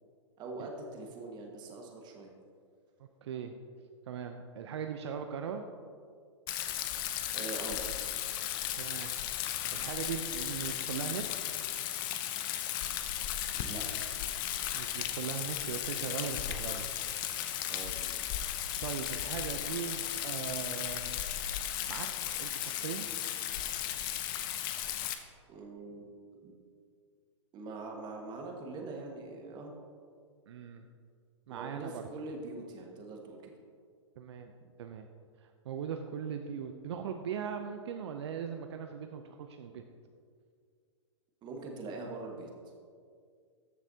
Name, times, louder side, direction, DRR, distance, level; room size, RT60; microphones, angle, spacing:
voice 1, 0.4-2.3 7.3-7.8 13.5-13.9 17.7-18.4 25.5-26.0 26.4-26.5 27.5-29.7 31.5-33.5 34.6-34.7 41.4-42.5, right 3 dB, 30° right, 1 dB, 1.6 m, -43 dB
voice 2, 3.2-3.5 4.1-5.6 8.7-9.1 9.7-11.5 14.7-16.9 18.4-18.5 18.8-21.2 21.9-23.1 30.5-30.8 31.5-32.0 34.2-34.5 34.8-35.1 35.4-39.8, right 7 dB, 60° right, 6 dB, 0.6 m, -39 dB
Rain, 6.5-25.1, left 11 dB, 45° left, 0.8 m, -35 dB
14.0 x 7.3 x 2.8 m, 2.2 s
hypercardioid pair, 120°, 16 cm